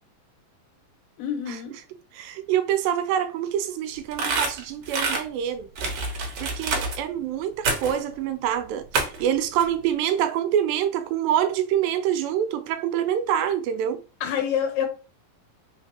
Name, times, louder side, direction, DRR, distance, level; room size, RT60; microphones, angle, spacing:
voice 1, 1.2-1.7 14.2-14.9, left 8 dB, 80° left, 2.7 m, -26 dB
voice 2, 2.1-5.7 6.4-14.0, right 10 dB, 85° right, 2.3 m, -26 dB
sound 1, 4.1-5.2 5.8-7.0 7.6-8.0 8.9-9.3 9.6-9.7, right 3 dB, 65° right, 1.8 m, -27 dB
5.1 x 3.6 x 2.9 m
omnidirectional pair, 4.1 m